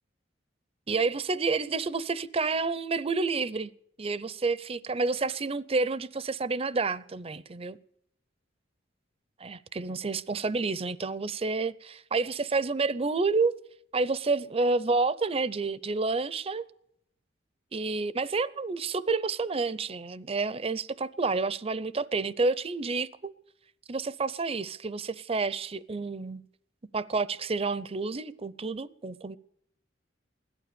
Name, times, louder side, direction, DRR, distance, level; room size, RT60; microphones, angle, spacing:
voice 1, 0.9-3.7 4.0-7.8 9.4-13.6 13.9-16.7 17.7-23.3 23.9-26.4 26.9-29.4, right 3 dB, 30° right, 0.6 m, -29 dB
17.0 x 12.0 x 6.9 m
head